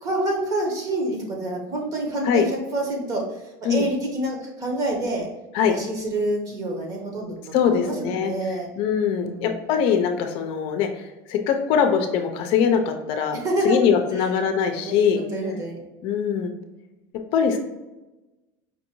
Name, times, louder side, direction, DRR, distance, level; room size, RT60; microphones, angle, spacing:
voice 1, 0.0-5.3 5.7-8.7 9.2-9.6 13.3-13.8 14.1-14.3 14.8-15.8, right 2 dB, 30° right, 1 dB, 1.1 m, -27 dB
voice 2, 7.5-8.3 8.8-13.4 13.6-15.2 16.0-16.5 17.3-17.6, left 7 dB, 55° left, 5 dB, 0.6 m, -22 dB
5.2 x 2.6 x 3.0 m, 1.1 s
supercardioid pair, 140°, 11 cm